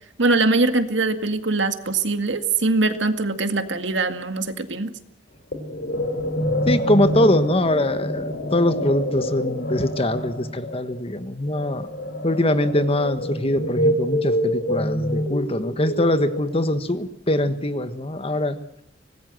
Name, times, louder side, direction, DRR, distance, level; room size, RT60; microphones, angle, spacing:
voice 1, 0.2-4.9, right 3 dB, 75° right, 8 dB, 2.0 m, -22 dB
sound 1, 5.5-16.8, equal, 60° left, 4.6 m, -26 dB
voice 2, 6.7-11.9 12.2-18.6, left 1 dB, 30° left, 11 dB, 1.4 m, -22 dB
25.0 x 19.5 x 7.8 m, 0.73 s
head